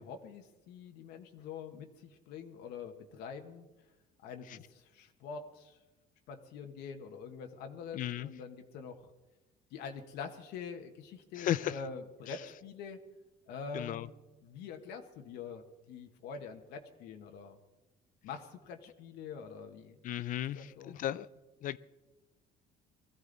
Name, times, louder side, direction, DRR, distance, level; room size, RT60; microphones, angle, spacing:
voice 1, 0.0-3.6 4.2-5.8 6.3-9.1 9.7-13.0 13.5-14.1 14.4-17.6 18.2-20.0 20.5-21.0, left 5 dB, 80° left, 1.4 m, -45 dB
voice 2, 7.9-8.3 11.4-11.8 13.7-14.1 20.0-21.3 21.6-21.8, left 12 dB, 55° left, 0.5 m, -35 dB
20.5 x 14.5 x 4.0 m
cardioid pair, 125°, 17 cm